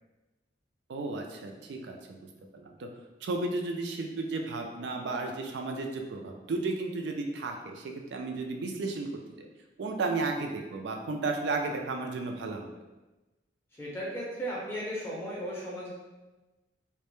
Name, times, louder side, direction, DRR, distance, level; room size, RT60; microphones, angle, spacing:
voice 1, 0.9-2.3 2.5-2.9 3.2-9.1 9.4-9.5 9.8-12.7, right 3 dB, 70° right, 3 dB, 0.3 m, -33 dB
voice 2, 13.7-15.9, equal, 15° left, -6 dB, 0.4 m, -36 dB
2.1 x 2.1 x 2.9 m, 1.1 s
head